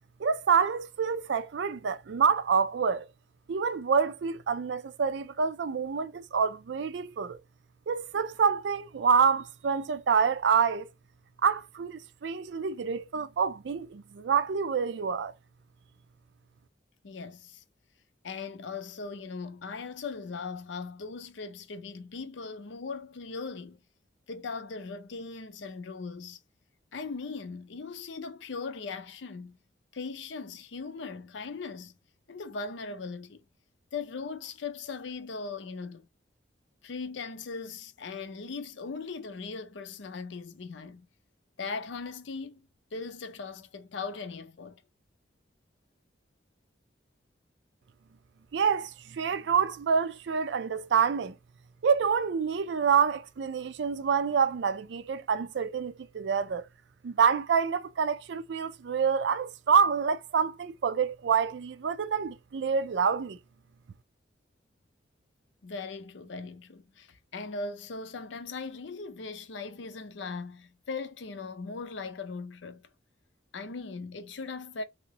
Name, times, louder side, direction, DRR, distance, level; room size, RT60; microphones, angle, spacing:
voice 1, 0.2-3.1 3.5-7.4 7.9-10.9 11.4-15.3 48.5-51.4 51.8-56.6 57.0-63.4, right 6 dB, 70° right, 0.4 m, -27 dB
voice 2, 17.0-17.6 18.2-23.8 24.3-26.4 26.9-29.6 29.9-31.9 32.3-33.4 33.9-36.1 36.8-41.1 41.6-44.8 65.6-72.8 73.5-74.8, left 4 dB, 75° left, 0.6 m, -39 dB
3.0 x 2.8 x 2.8 m
head